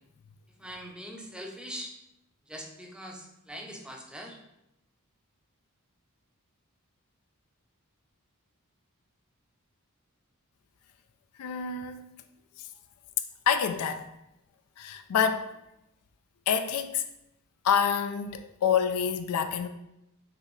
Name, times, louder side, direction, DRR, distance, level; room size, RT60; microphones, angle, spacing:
voice 1, 0.6-1.9 2.5-4.4, equal, 5° right, 0.5 m, -42 dB
voice 2, 11.4-12.0 13.5-14.1 14.8-15.5 16.5-17.0 17.6-19.7, left 7 dB, 85° left, 0.4 m, -27 dB
5.9 x 2.8 x 3.0 m
head